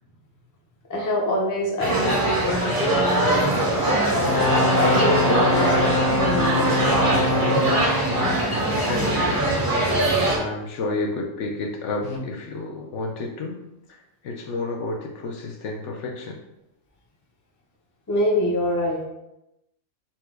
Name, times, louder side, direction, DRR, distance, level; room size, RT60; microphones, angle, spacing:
voice 1, 0.9-3.6 4.6-7.3 9.2-9.4 18.1-19.0, left 1 dB, 20° left, -2 dB, 0.5 m, -26 dB
sound 1, 1.8-10.4, right 1 dB, 20° right, 0.7 m, -22 dB
sound 2, 4.2-9.3 12.0-12.2, left 2 dB, 85° left, 1.2 m, -25 dB
voice 2, 8.1-8.4 8.9-9.5 10.2-13.6 13.9-16.4, left 2 dB, 70° left, 2 dB, 0.9 m, -31 dB
4.5 x 2.2 x 4.5 m, 0.90 s
omnidirectional pair, 1.4 m